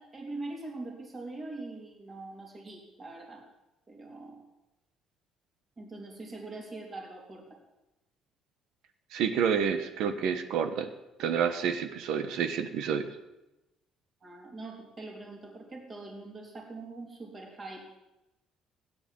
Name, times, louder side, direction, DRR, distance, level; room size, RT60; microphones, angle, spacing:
voice 1, 0.0-3.5 3.9-4.4 5.8-7.6 14.2-18.0, right 2 dB, 20° right, 0 dB, 3.7 m, -43 dB
voice 2, 9.1-10.9 11.2-13.1, right 7 dB, 65° right, 9 dB, 1.3 m, -29 dB
17.0 x 10.0 x 7.7 m, 0.94 s
cardioid pair, 175°, 0 cm